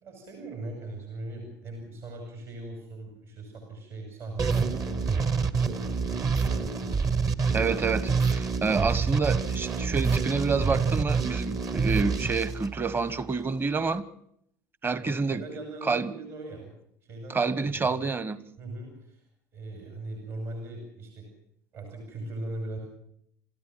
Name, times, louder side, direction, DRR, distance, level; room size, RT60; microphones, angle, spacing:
voice 1, 0.0-6.9 15.0-16.7 17.0-18.1 18.6-19.2 19.5-21.3 21.7-22.8, right 2 dB, 55° right, 3 dB, 5.8 m, -40 dB
sound 1, 4.4-13.3, right 5 dB, 35° right, 1.5 m, -27 dB
voice 2, 7.5-14.0 14.8-15.4 15.8-16.1 17.3-18.4, right 4 dB, 20° right, 18 dB, 1.2 m, -28 dB
27.5 x 14.0 x 7.4 m, 0.70 s
figure-of-eight pair, 65°, 10 cm